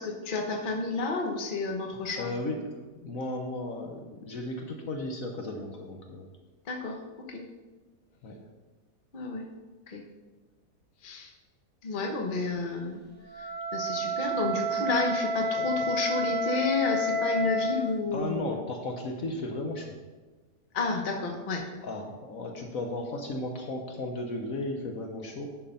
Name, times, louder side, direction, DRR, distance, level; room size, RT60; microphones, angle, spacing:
voice 1, 0.0-2.3 6.7-7.4 9.1-9.4 9.9-10.0 11.0-11.3 11.8-13.0 13.4-18.4 20.7-21.6, left 3 dB, 35° left, 2 dB, 1.1 m, -31 dB
voice 2, 2.2-2.6 3.0-6.2 8.2-8.3 18.1-19.9 21.8-25.5, left 2 dB, 60° left, 3 dB, 1.3 m, -35 dB
Wind instrument woodwind instrument, 13.2-17.9, equal, 5° left, 1.4 m, -30 dB
10.5 x 4.6 x 5.5 m, 1.2 s
omnidirectional pair, 1.8 m